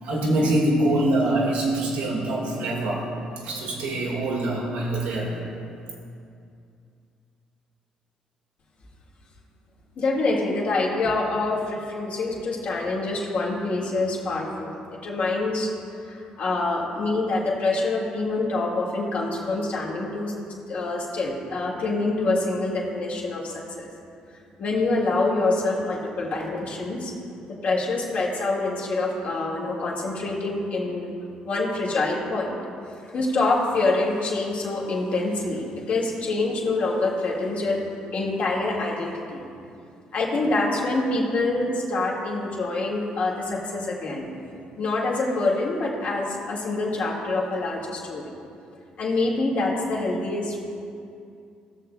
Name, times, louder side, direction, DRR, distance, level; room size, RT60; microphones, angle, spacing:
voice 1, 0.0-3.1 3.4-5.4, right 1 dB, 80° right, -3 dB, 1.7 m, -24 dB
voice 2, 10.0-15.7 16.1-20.3 20.7-23.9 24.6-27.1 27.5-31.1 31.5-32.6 33.1-39.4 40.1-44.3 44.8-48.2 49.0-50.6, left 2 dB, 60° left, -4 dB, 1.8 m, -26 dB
17.5 x 6.7 x 2.3 m, 2.5 s
supercardioid pair, 60°, 3 cm